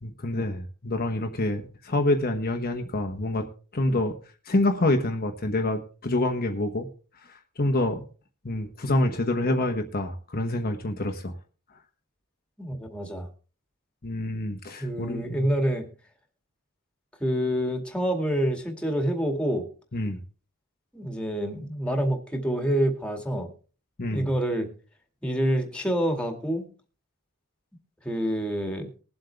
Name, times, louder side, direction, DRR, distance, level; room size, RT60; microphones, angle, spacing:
voice 1, 0.0-3.5 3.7-4.2 4.5-6.9 7.6-8.1 8.4-11.3 14.0-15.5 19.9-20.2 24.0-24.3, left 1 dB, 45° left, 4 dB, 1.1 m, -27 dB
voice 2, 12.6-13.3 14.8-15.9 17.2-19.7 20.9-23.5 24.1-24.7 25.2-26.7 28.0-28.9, equal, 5° left, 4 dB, 2.1 m, -27 dB
21.0 x 7.8 x 3.4 m, 0.37 s
head